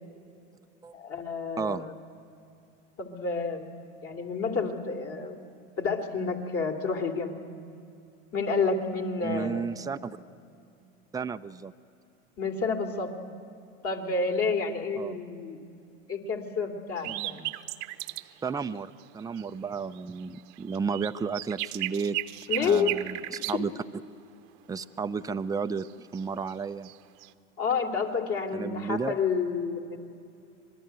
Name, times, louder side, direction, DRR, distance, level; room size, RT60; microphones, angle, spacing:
voice 1, 0.9-1.9 3.0-3.7 4.0-5.4 5.8-7.3 8.3-9.6 12.4-13.1 13.8-15.6 16.1-17.5 22.5-23.0 23.5-23.6 27.6-30.0, left 4 dB, 40° left, 4 dB, 3.1 m, -29 dB
voice 2, 9.2-10.2 11.1-11.7 15.0-15.2 17.0-17.5 18.4-22.2 22.6-23.7 24.7-26.9 28.5-29.2, right 5 dB, 10° right, 10 dB, 0.6 m, -33 dB
sound 1, 17.0-18.3 18.6-18.7 19.0-19.5 19.7-23.6 25.8-26.6 26.8-27.3, right 20 dB, 55° right, 1.0 m, -35 dB
26.0 x 20.0 x 9.4 m, 2.6 s
hypercardioid pair, 95°, 36 cm